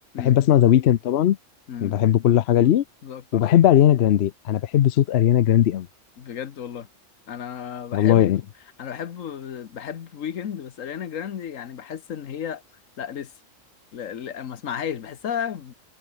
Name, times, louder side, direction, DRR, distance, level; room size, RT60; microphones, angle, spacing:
voice 1, 0.2-1.4 1.8-2.8 3.3-5.9 7.9-8.4, left 11 dB, 60° left, 0.8 m, -18 dB
voice 2, 1.7-2.0 2.5-2.8 3.0-3.4 6.2-6.9 7.3-12.6 13.0-13.3 13.9-15.7, left 8 dB, 80° left, 1.4 m, -33 dB
omnidirectional pair, 1.3 m